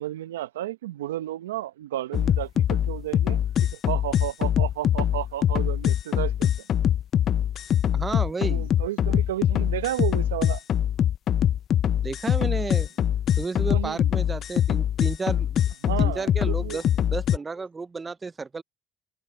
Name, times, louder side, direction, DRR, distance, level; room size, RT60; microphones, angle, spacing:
voice 1, 0.0-3.4 3.7-6.7 8.4-10.6 13.6-14.1 15.8-16.8, right 14 dB, 90° right, 0.9 m, -32 dB
sound 1, 2.1-17.4, left 10 dB, 60° left, 0.6 m, -23 dB
voice 2, 7.9-8.7 12.0-12.9 13.4-15.6 16.0-18.6, right 4 dB, 30° right, 0.7 m, -32 dB
hypercardioid pair, 55°, 0 cm